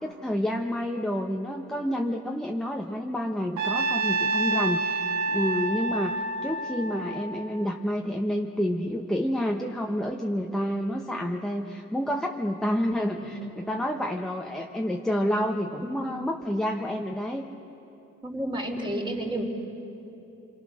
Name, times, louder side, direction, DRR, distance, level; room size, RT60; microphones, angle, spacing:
voice 1, 0.0-17.5, equal, ahead, 1 dB, 1.2 m, -29 dB
Trumpet, 3.6-7.8, right 3 dB, 90° right, 1.6 m, -28 dB
voice 2, 13.1-13.5 15.8-16.1 18.2-19.4, right 1 dB, 15° right, 1 dB, 4.0 m, -32 dB
28.0 x 23.0 x 6.4 m, 2.9 s
cardioid pair, 90°, 30 cm